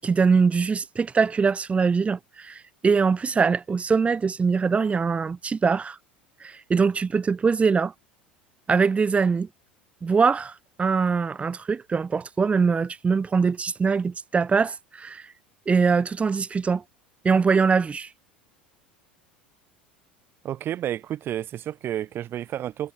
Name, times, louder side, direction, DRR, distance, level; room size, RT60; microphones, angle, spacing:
voice 1, 0.0-6.0 6.4-7.9 8.7-9.5 10.0-15.2 15.7-16.8 17.2-18.1, right 5 dB, 25° right, 7.4 m, -22 dB
voice 2, 20.4-22.9, right 11 dB, 45° right, 4.7 m, -31 dB
hypercardioid pair, 85°, 5 cm